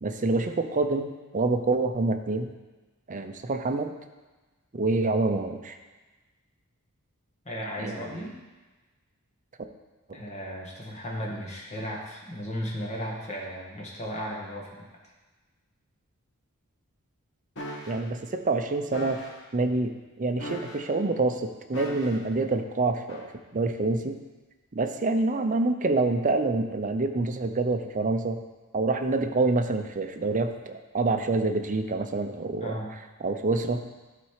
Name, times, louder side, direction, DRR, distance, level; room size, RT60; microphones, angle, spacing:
voice 1, 0.0-2.5 3.1-3.9 4.7-5.8 7.8-8.2 10.1-10.2 17.9-19.2 19.5-24.2 24.7-28.4 28.7-32.8 33.2-33.8, right 3 dB, 35° right, 7 dB, 0.6 m, -27 dB
voice 2, 7.5-8.4 10.1-14.8 32.6-32.9, equal, 30° left, -2 dB, 1.7 m, -35 dB
sound 1, 17.6-18.0 18.9-19.4 20.4-21.0 21.7-22.3 23.1-23.3, left 1 dB, 55° left, 1.4 m, -39 dB
12.0 x 4.2 x 4.9 m, 1.2 s
head